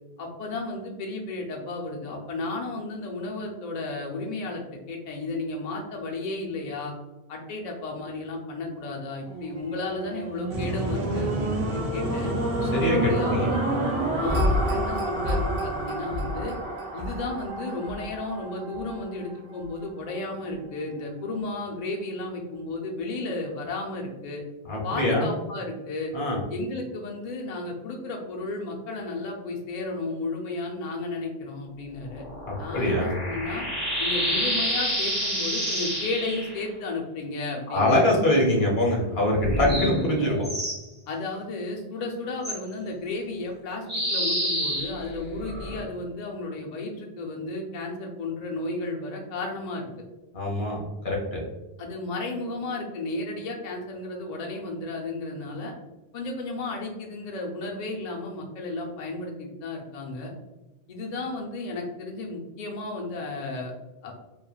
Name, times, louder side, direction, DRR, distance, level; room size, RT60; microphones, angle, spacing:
voice 1, 0.2-6.9 7.3-12.3 12.8-13.6 14.2-16.5 16.9-24.4 24.8-26.1 26.5-32.2 32.6-33.6 34.0-38.3 39.0-39.1 41.1-49.9 51.8-55.7 56.1-60.3 60.9-63.7 64.0-64.1, left 2 dB, 55° left, 0 dB, 0.5 m, -33 dB
sound 1, 9.2-19.5 20.1-20.2, right 1 dB, 70° right, 1.0 m, -29 dB
sound 2, 10.5-16.4, equal, 45° right, 0.6 m, -33 dB
voice 2, 12.7-13.5 24.7-25.3 26.1-26.4 32.5-33.1 37.7-40.5 50.3-51.4, left 1 dB, 80° left, -2 dB, 1.0 m, -24 dB
sound 3, 32.1-36.6 39.4-40.8 42.4-42.6 43.9-45.8, equal, 10° right, 0.8 m, -28 dB
3.2 x 2.2 x 2.3 m, 1.0 s
omnidirectional pair, 1.0 m